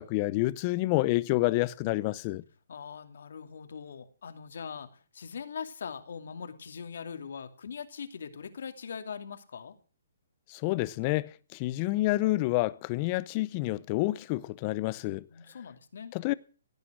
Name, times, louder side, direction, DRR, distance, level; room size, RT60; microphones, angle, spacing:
voice 1, 0.0-2.4 10.5-15.2 16.1-16.3, left 19 dB, 30° left, 0.7 m, -28 dB
voice 2, 2.7-9.7 15.3-16.1, left 6 dB, 70° left, 2.6 m, -41 dB
17.5 x 9.6 x 6.2 m
hypercardioid pair, 155°, 0 cm